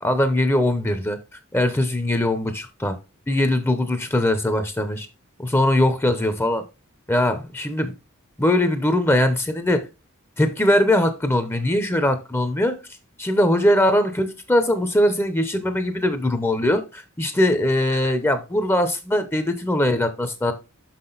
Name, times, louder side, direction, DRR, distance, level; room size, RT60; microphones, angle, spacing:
voice 1, 0.0-1.2 1.5-3.0 3.3-5.1 5.4-6.6 7.1-7.9 8.4-9.9 10.4-12.8 13.2-20.5, left 1 dB, 10° left, 0.6 m, -21 dB
6.1 x 5.9 x 3.9 m
head